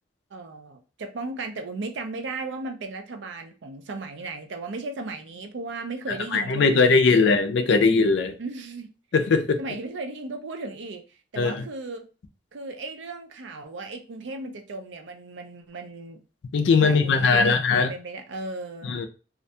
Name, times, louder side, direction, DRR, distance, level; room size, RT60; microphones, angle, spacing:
voice 1, 0.3-7.3 8.4-8.9 9.6-11.0 11.3-12.1 12.5-16.2 16.8-18.9, right 3 dB, 75° right, 0.4 m, -35 dB
voice 2, 6.1-8.4 9.1-9.6 11.4-11.6 16.5-17.9 18.8-19.1, left 4 dB, 70° left, 0.4 m, -20 dB
2.4 x 2.2 x 2.6 m
head